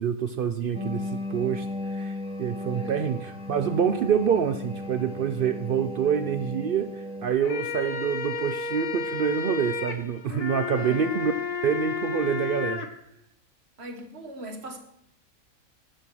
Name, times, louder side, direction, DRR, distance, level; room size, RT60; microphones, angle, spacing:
voice 1, 0.0-11.3 11.6-12.9, right 7 dB, 75° right, 10 dB, 0.5 m, -27 dB
sound 1, 0.7-7.3, left 2 dB, 5° right, 0.6 m, -35 dB
voice 2, 2.7-3.1 10.8-11.1 13.8-14.8, right 1 dB, 45° right, 4 dB, 1.6 m, -40 dB
sound 2, 7.3-12.9, left 4 dB, 70° left, 1.5 m, -32 dB
9.9 x 7.2 x 6.1 m, 0.76 s
omnidirectional pair, 1.5 m